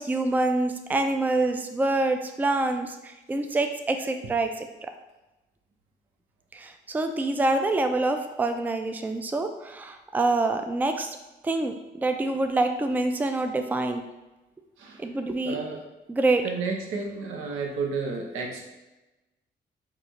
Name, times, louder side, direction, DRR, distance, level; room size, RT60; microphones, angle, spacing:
voice 1, 0.0-4.9 6.5-11.2 11.4-14.0 15.0-15.6 16.1-16.5, right 2 dB, 10° right, 6 dB, 0.3 m, -26 dB
voice 2, 15.4-15.8 16.4-18.7, right 4 dB, 85° right, 1 dB, 0.7 m, -31 dB
3.0 x 2.4 x 3.9 m, 1.1 s
supercardioid pair, 60°, 20 cm